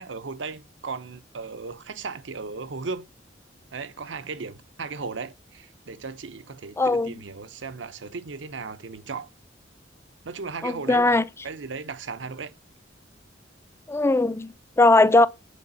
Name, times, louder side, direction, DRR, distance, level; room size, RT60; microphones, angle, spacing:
voice 1, 0.0-3.0 3.7-9.3 10.2-12.5, right 4 dB, 80° right, 0.8 m, -36 dB
voice 2, 6.8-7.1 10.6-11.2 13.9-15.3, left 2 dB, 15° left, 0.3 m, -19 dB
8.3 x 4.9 x 5.3 m
head